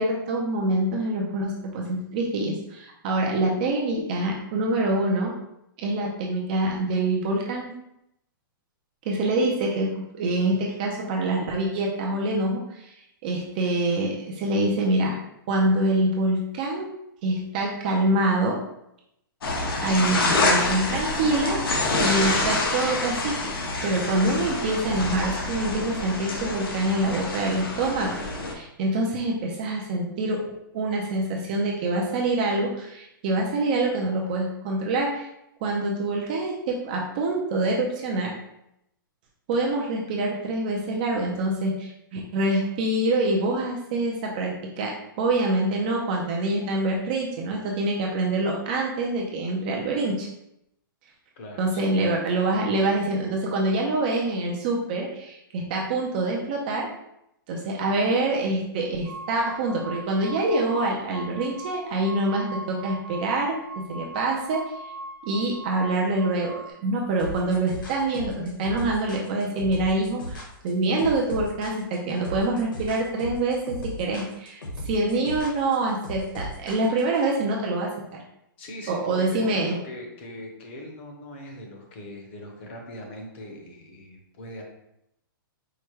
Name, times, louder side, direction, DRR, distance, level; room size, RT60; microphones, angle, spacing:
voice 1, 0.0-5.3 5.8-7.7 9.1-12.9 13.2-15.2 15.5-16.9 17.2-18.6 19.8-21.6 22.0-23.5 23.8-28.2 28.4-30.4 30.7-35.3 35.6-38.3 39.5-50.3 51.6-56.9 57.5-63.6 63.9-64.6 65.2-77.9 78.9-79.8, right 2 dB, 25° right, -1 dB, 0.4 m, -25 dB
sound 1, 19.4-28.5, left 2 dB, 85° left, 1.0 m, -27 dB
voice 2, 51.3-52.0 52.3-52.5 78.6-84.6, left 1 dB, 30° left, 2 dB, 0.7 m, -41 dB
sound 2, 59.0-66.7, right 1 dB, 85° right, 1.0 m, -40 dB
sound 3, 67.2-77.2, equal, 70° left, 1.3 m, -36 dB
4.7 x 2.1 x 4.5 m, 0.81 s
hypercardioid pair, 175°, 12 cm